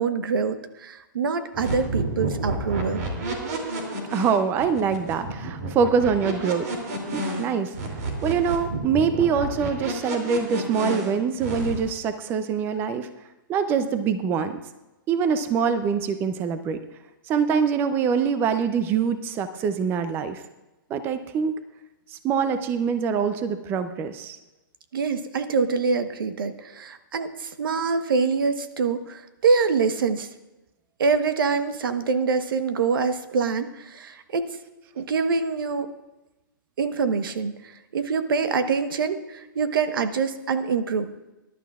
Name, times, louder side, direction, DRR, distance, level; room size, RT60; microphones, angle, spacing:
voice 1, 0.0-3.0 24.9-30.3 31.0-34.6 35.0-35.9 36.8-41.1, right 5 dB, 80° right, 10 dB, 1.1 m, -25 dB
sound 1, 1.5-11.9, right 2 dB, 50° right, 2.8 m, -30 dB
voice 2, 4.1-6.7 7.1-7.7 8.2-13.1 13.5-14.6 15.1-16.8 17.3-20.4 20.9-21.6 22.1-24.4, right 6 dB, 20° right, 10 dB, 0.5 m, -24 dB
20.0 x 11.5 x 2.4 m, 1.0 s
hypercardioid pair, 155°, 11 cm